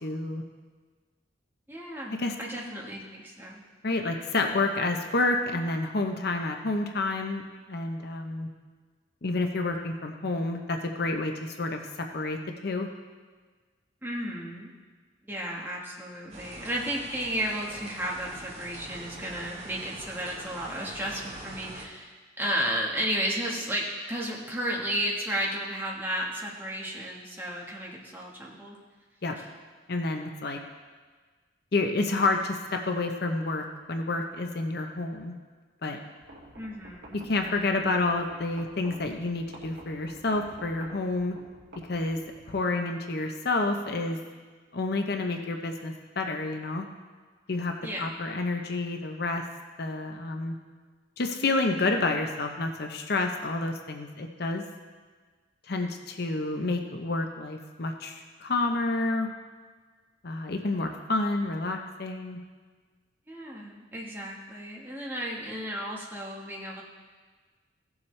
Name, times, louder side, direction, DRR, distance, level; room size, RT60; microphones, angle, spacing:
voice 1, 0.0-0.4 2.1-2.3 3.8-7.4 7.7-8.5 9.2-11.8 12.1-12.4 12.6-12.9 29.2-29.4 29.9-30.6 31.7-35.4 35.8-36.0 37.1-41.4 41.9-42.2 42.5-44.2 44.7-46.9 47.5-47.7 48.0-49.4 49.8-50.6 51.2-54.6 55.7-59.3 60.2-62.4, left 2 dB, 55° left, 4 dB, 0.7 m, -29 dB
voice 2, 1.7-3.6 14.0-14.7 15.2-28.8 36.5-37.3 47.8-48.1 63.3-66.8, equal, 10° right, -3 dB, 1.4 m, -33 dB
sound 1, 16.3-21.9, right 2 dB, 35° right, 1.2 m, -43 dB
sound 2, 36.2-42.5, right 1 dB, 65° right, 2.5 m, -50 dB
16.5 x 7.2 x 3.3 m, 1.4 s
head